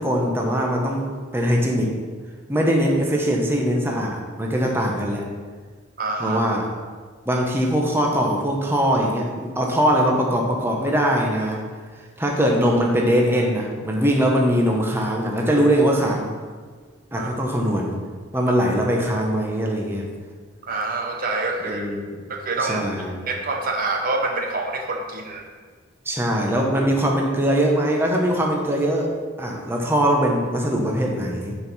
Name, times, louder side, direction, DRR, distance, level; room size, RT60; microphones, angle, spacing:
voice 1, 0.0-2.0 2.5-5.3 6.2-6.7 7.2-11.6 12.0-16.3 17.1-18.0 18.3-20.1 21.6-22.2 22.6-23.3 26.0-31.6, equal, 10° right, 0 dB, 0.9 m, -21 dB
voice 2, 6.0-6.6 17.2-17.3 20.7-21.8 22.3-22.9 23.3-25.5, right 3 dB, 45° right, 2 dB, 0.7 m, -26 dB
10.0 x 4.7 x 4.2 m, 1.5 s
head